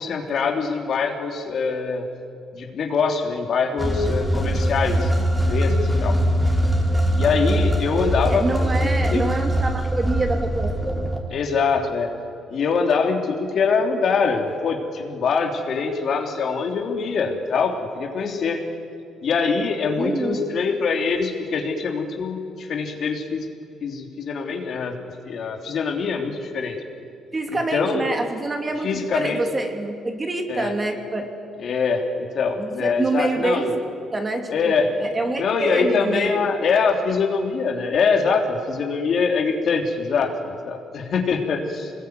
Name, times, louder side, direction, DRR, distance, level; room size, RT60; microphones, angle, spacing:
voice 1, 0.0-2.1 2.5-6.2 7.1-8.4 8.8-9.2 11.3-12.1 12.5-18.6 19.2-23.5 23.8-24.9 25.3-26.8 27.5-28.0 28.8-29.4 30.5-30.7 31.6-33.8 34.5-34.9 35.4-41.9, left 5 dB, 55° left, 3 dB, 3.2 m, -23 dB
sound 1, 3.8-11.2, equal, 5° right, 3.7 m, -22 dB
voice 2, 8.2-11.0 20.0-20.5 27.3-31.3 32.6-33.8 34.1-36.4, right 2 dB, 25° right, 4 dB, 2.9 m, -26 dB
25.0 x 20.5 x 9.5 m, 2.4 s
cardioid pair, 110°, 0 cm